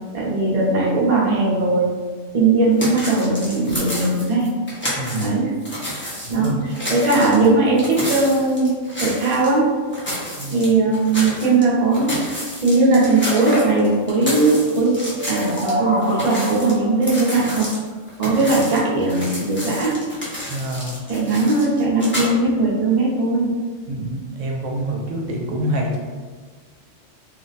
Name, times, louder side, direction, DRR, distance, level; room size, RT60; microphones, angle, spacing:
voice 1, 0.1-1.9 2.3-4.5 5.2-5.5 6.3-6.5 6.9-8.7 9.0-9.7 10.5-12.1 12.6-15.0 15.3-17.7 18.2-20.0 21.1-23.5, right 3 dB, 40° right, -5 dB, 0.6 m, -18 dB
sound 1, 2.8-5.3 5.6-9.5 9.9-11.6 11.9-15.7 16.0-22.3, equal, 15° left, 0.4 m, -30 dB
voice 2, 5.0-5.4 6.2-6.6 10.4-10.6 18.2-18.3 20.5-21.0 23.9-26.0, right 1 dB, 80° right, 0 dB, 0.9 m, -26 dB
sound 2, 15.2-17.0, equal, 70° left, 1.0 m, -27 dB
2.5 x 2.1 x 3.9 m, 1.5 s
omnidirectional pair, 1.3 m